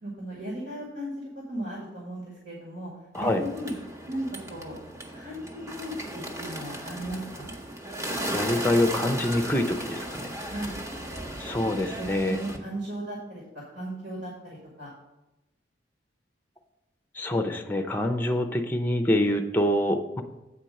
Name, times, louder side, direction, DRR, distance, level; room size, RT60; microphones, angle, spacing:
voice 1, 0.0-2.9 3.2-3.7 4.1-4.7 5.1-7.5 10.5-10.8 12.0-13.4 13.7-14.9, right 1 dB, 70° right, -4 dB, 1.9 m, -36 dB
Bird, 3.1-12.6, right 1 dB, 15° right, 0.9 m, -36 dB
voice 2, 8.3-10.3 11.4-12.4 17.2-20.2, left 1 dB, 10° left, 7 dB, 0.6 m, -25 dB
8.5 x 4.4 x 6.4 m, 0.99 s
head